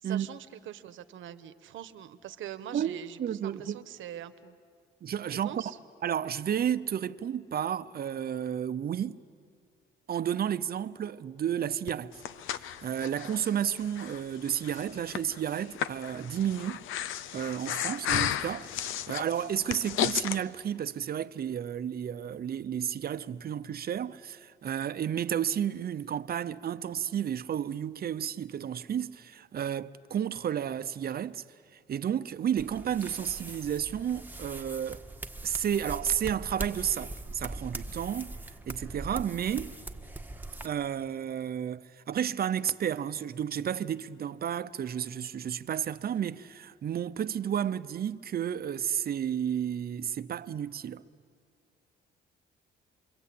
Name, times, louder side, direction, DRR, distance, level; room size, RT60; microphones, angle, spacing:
voice 1, 0.0-4.6 5.3-5.8, right 11 dB, 80° right, 1.2 m, -43 dB
voice 2, 2.7-3.8 5.0-5.6 6.0-9.2 10.1-12.1 12.5-16.8 17.3-31.4 31.7-35.0 35.4-38.3 38.7-39.7 40.6-51.0, right 9 dB, 50° right, 0.8 m, -32 dB
Breathing, 11.9-20.4, left 10 dB, 85° left, 0.7 m, -34 dB
Sonic Snap Sint-Laurens, 32.6-40.7, right 2 dB, 10° right, 1.5 m, -41 dB
28.5 x 23.5 x 8.6 m
cardioid pair, 90°, 20 cm